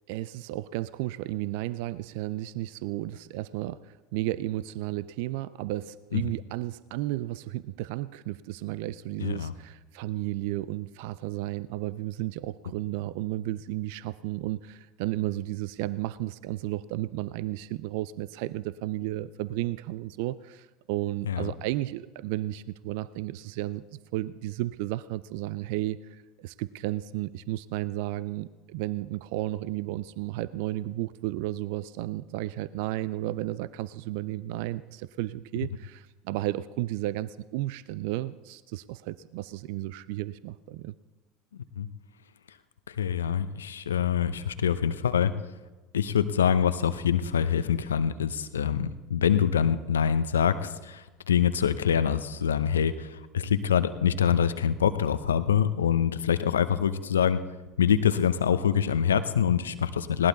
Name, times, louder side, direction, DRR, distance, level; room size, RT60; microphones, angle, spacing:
voice 1, 0.1-23.8 24.1-40.9, right 16 dB, 65° right, 18 dB, 0.4 m, -33 dB
voice 2, 9.2-9.5 21.3-21.5 41.8-41.9 42.9-45.3 45.9-57.4 57.8-60.3, left 8 dB, 85° left, 12 dB, 0.7 m, -25 dB
19.5 x 18.0 x 4.0 m, 1.2 s
hypercardioid pair, 75°, 0 cm